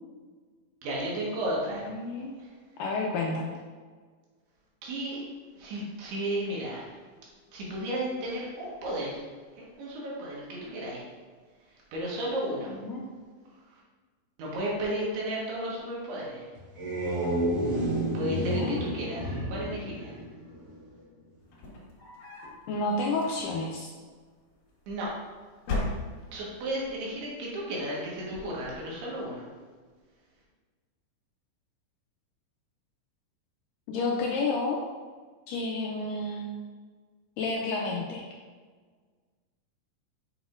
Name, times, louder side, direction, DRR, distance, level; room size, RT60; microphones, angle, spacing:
voice 1, 0.8-1.9 4.8-5.2 5.6-6.8 7.5-9.2 9.8-11.0 11.9-12.7 14.4-16.4 18.1-20.1 24.9-25.1 26.3-29.5, right 1 dB, 90° right, -4 dB, 3.6 m, -33 dB
voice 2, 1.7-2.4 2.8-3.6 12.7-13.0 18.4-18.8 22.7-23.9 33.9-34.8 35.5-36.5 37.4-38.2, left 3 dB, 80° left, -1 dB, 2.0 m, -30 dB
sound 1, 16.6-20.8, right 1 dB, 45° right, 2.3 m, -30 dB
sound 2, 21.4-22.6 23.1-23.8 24.8-25.3 25.6-26.5, left 2 dB, 65° left, 3.0 m, -35 dB
8.0 x 5.6 x 2.5 m, 1.5 s
omnidirectional pair, 4.4 m